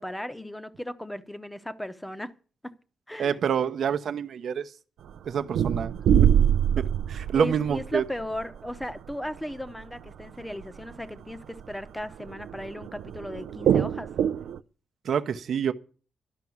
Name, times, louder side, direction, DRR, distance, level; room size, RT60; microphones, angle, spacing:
voice 1, 0.0-2.3 2.6-2.7 3.1-3.4 7.3-14.1, left 1 dB, 5° left, 0.8 m, -36 dB
voice 2, 3.2-4.7 5.3-5.9 6.8-8.0 15.0-15.7, right 8 dB, 50° right, 0.8 m, -27 dB
sound 1, 5.1-5.2 5.5-9.5 9.8-9.9 10.2-10.3 10.6-10.9 11.3-11.4 11.6-14.6, right 9 dB, 80° right, 0.5 m, -24 dB
12.5 x 6.0 x 9.3 m
wide cardioid pair, 165°, 0 cm